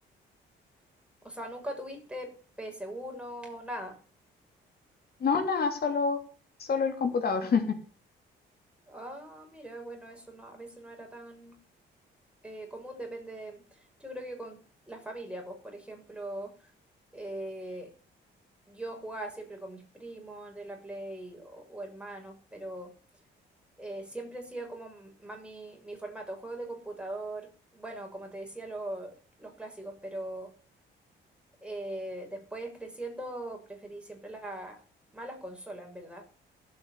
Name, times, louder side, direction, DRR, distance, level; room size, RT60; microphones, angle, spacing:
voice 1, 1.2-4.0 8.9-11.6 12.4-14.6 14.9-16.7 17.1-17.9 18.7-22.9 23.8-30.5 31.6-34.8 35.1-36.2, right 1 dB, 5° right, 2 dB, 6.4 m, -41 dB
voice 2, 5.2-6.2 6.6-7.6, left 5 dB, 50° left, 6 dB, 3.2 m, -27 dB
17.0 x 8.6 x 7.0 m, 0.40 s
cardioid pair, 90°, 20 cm